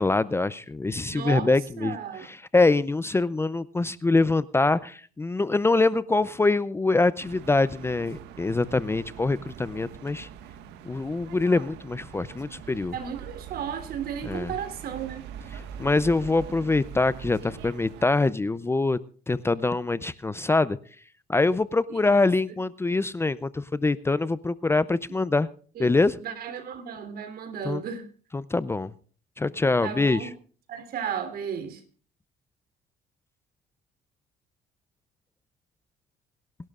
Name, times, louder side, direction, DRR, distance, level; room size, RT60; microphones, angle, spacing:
voice 1, 0.0-10.3 10.8-13.0 14.3-14.5 15.5-19.0 19.3-20.8 21.3-25.5 25.8-26.2 27.7-27.8 28.3-28.9 29.4-30.3, left 3 dB, 15° left, 0.5 m, -24 dB
voice 2, 1.1-2.3 12.9-15.3 21.9-22.0 25.7-28.1 29.8-30.3 30.7-31.8, right 8 dB, 65° right, 3.3 m, -34 dB
sound 1, 7.2-18.1, right 8 dB, 85° right, 1.5 m, -43 dB
28.5 x 12.0 x 2.5 m
cardioid pair, 110°, 17 cm